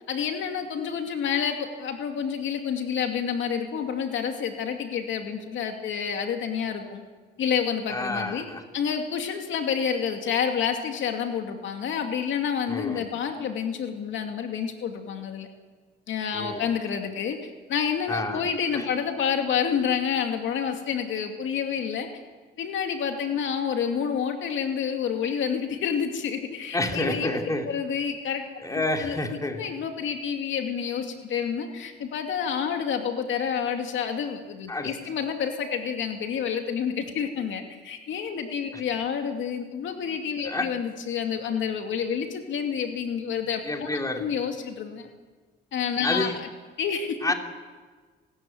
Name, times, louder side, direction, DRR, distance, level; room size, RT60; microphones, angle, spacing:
voice 1, 0.1-7.0 7.4-8.5 8.7-15.5 16.1-22.1 22.6-27.3 27.6-28.4 28.8-29.2 29.5-43.9 44.2-45.1 45.7-46.5 46.8-47.2, left 7 dB, 75° left, 4 dB, 2.5 m, -29 dB
voice 2, 7.9-8.6 12.7-13.0 16.3-16.6 18.1-18.4 18.7-18.8 26.7-27.7 28.6-29.6 34.7-34.9 40.4-40.7 43.6-44.2 46.0-46.4 47.2-47.3, left 2 dB, 15° left, 3 dB, 3.1 m, -29 dB
30.0 x 13.5 x 9.4 m, 1.4 s
cardioid pair, 90°, 20 cm